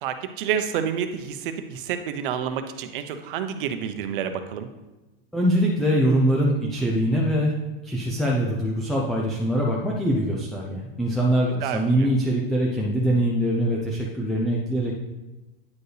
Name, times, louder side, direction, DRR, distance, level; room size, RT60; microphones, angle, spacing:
voice 1, 0.0-4.7 11.6-12.1, right 8 dB, 60° right, 8 dB, 0.8 m, -29 dB
voice 2, 5.3-7.5 7.8-14.9, equal, ahead, -3 dB, 0.4 m, -23 dB
9.4 x 4.5 x 3.3 m, 1.1 s
supercardioid pair, 145°, 29 cm